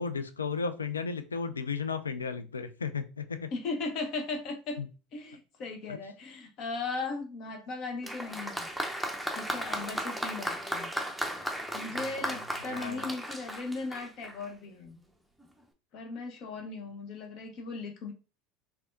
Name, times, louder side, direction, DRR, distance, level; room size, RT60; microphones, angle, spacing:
voice 1, 0.0-3.5 4.8-4.9 5.9-6.0 11.9-13.1, left 5 dB, 90° left, 0.3 m, -35 dB
voice 2, 3.5-4.8 5.1-8.7 9.4-10.9 11.7-15.0 15.9-18.1, left 3 dB, 50° left, 0.8 m, -37 dB
Applause, 8.0-14.5 15.4-15.5, equal, ahead, 0.6 m, -35 dB
3.4 x 3.4 x 2.5 m
hypercardioid pair, 75°, 0 cm